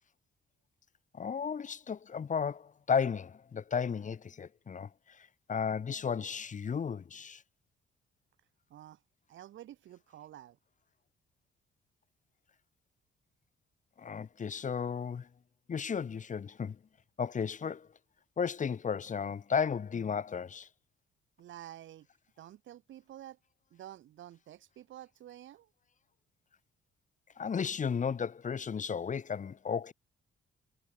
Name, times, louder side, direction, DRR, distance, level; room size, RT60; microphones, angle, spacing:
voice 1, 1.1-7.4 14.0-15.3 15.7-16.8 17.2-17.9 18.4-20.7 27.4-29.9, left 6 dB, 40° left, 1.4 m, -34 dB
voice 2, 8.7-9.0 9.3-10.6 21.4-22.1 22.4-23.4 23.7-25.7, right 12 dB, 75° right, 2.5 m, -50 dB
cardioid pair, 90°, 20 cm